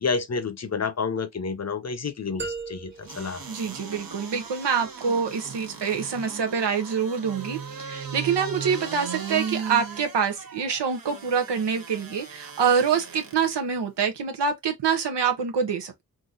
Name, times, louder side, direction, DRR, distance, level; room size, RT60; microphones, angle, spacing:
voice 1, 0.0-3.4, left 5 dB, 40° left, 0.7 m, -29 dB
sound 1, 2.4-4.4, right 4 dB, 25° right, 1.2 m, -38 dB
sound 2, 3.0-13.5 14.0-14.1, right 6 dB, 55° right, 0.9 m, -37 dB
voice 2, 3.5-16.0, right 6 dB, 85° right, 0.9 m, -26 dB
3.8 x 2.6 x 2.5 m
cardioid pair, 45°, 41 cm